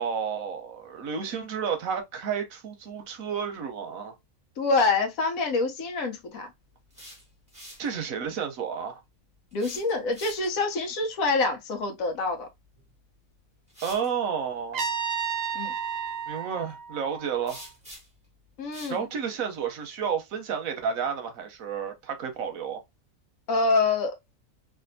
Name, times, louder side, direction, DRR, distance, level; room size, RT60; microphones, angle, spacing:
voice 1, 0.0-4.1 7.8-9.0 13.8-14.9 16.3-17.6 18.9-22.8, right 7 dB, 90° right, 1.2 m, -31 dB
voice 2, 4.6-6.5 9.5-12.5 15.5-15.7 18.6-19.0 23.5-24.1, left 3 dB, 85° left, 1.2 m, -26 dB
sound 1, 6.7-7.9 9.5-10.7 12.8-12.9 13.7-14.1 17.5-18.3 18.7-19.0, equal, 5° right, 1.4 m, -46 dB
Trumpet, 14.7-17.7, right 6 dB, 65° right, 0.4 m, -32 dB
3.3 x 2.6 x 2.6 m
omnidirectional pair, 1.4 m